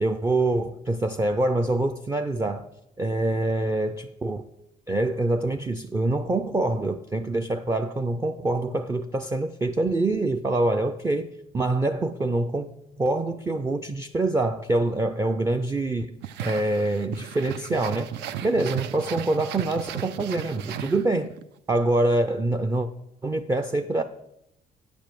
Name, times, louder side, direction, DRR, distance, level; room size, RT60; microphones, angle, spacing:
voice 1, 0.0-2.6 3.0-4.4 4.9-12.7 13.0-16.1 16.4-18.1 18.4-21.3 21.7-22.9 23.2-24.0, right 2 dB, 15° right, 6 dB, 0.4 m, -25 dB
sound 1, 16.2-21.4, right 9 dB, 80° right, 0.6 m, -35 dB
8.9 x 5.2 x 7.5 m, 0.85 s
cardioid pair, 110°, 17 cm